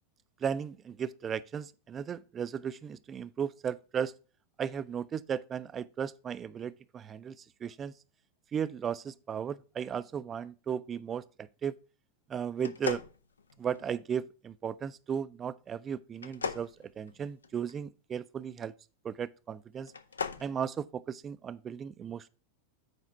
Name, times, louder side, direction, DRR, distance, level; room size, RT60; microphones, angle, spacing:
voice 1, 0.4-4.1 4.6-7.3 7.6-7.9 8.5-11.2 11.6-11.7 12.3-13.0 13.6-16.7 17.0-18.7 19.0-19.9 20.4-22.3, right 7 dB, 25° right, 0.5 m, -35 dB
sound 1, 12.6-14.0 16.2-17.7 19.8-20.5, left 5 dB, 75° left, 0.6 m, -38 dB
8.0 x 5.1 x 4.5 m
figure-of-eight pair, 90°, 0 cm